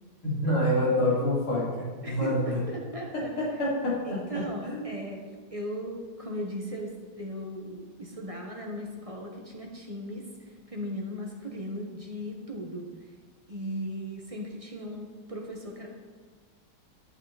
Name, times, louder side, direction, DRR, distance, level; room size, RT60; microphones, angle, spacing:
voice 1, 0.2-2.6 3.1-3.9 4.6-4.9, left 1 dB, 85° left, -8 dB, 4.5 m, -27 dB
voice 2, 2.0-3.3 4.0-5.3 5.5-10.3 10.7-12.9 13.5-15.9, equal, 20° right, -1 dB, 1.2 m, -37 dB
12.0 x 8.6 x 4.2 m, 1.5 s
omnidirectional pair, 2.3 m